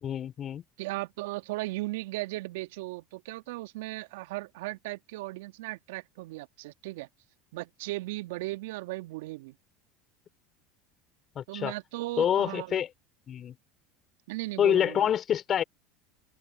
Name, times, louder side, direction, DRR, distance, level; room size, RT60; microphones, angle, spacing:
voice 1, 0.0-0.6 11.4-11.7 12.2-12.9 13.3-13.6 14.6-15.6, left 9 dB, 40° left, 3.8 m, -26 dB
voice 2, 0.8-7.1 7.5-9.6 11.5-12.8 14.3-15.1, right 20 dB, 70° right, 1.8 m, -37 dB
hypercardioid pair, 80°, 0 cm